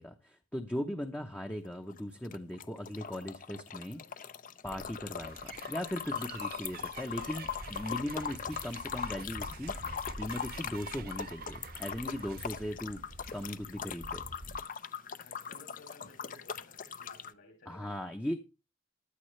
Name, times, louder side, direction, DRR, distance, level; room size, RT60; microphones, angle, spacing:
voice 1, 0.0-4.0 4.6-13.0 13.3-14.2 17.7-18.4, left 1 dB, 10° left, 3 dB, 0.8 m, -38 dB
sound 1, 1.6-17.3, left 7 dB, 40° left, 0.6 m, -40 dB
voice 2, 3.8-4.2 15.2-17.9, left 2 dB, 60° left, 4 dB, 2.9 m, -57 dB
sound 2, 4.6-14.6, right 1 dB, 80° right, 1.9 m, -49 dB
sound 3, 5.2-13.5, right 8 dB, 45° right, 0.6 m, -51 dB
15.0 x 10.5 x 3.2 m, 0.28 s
head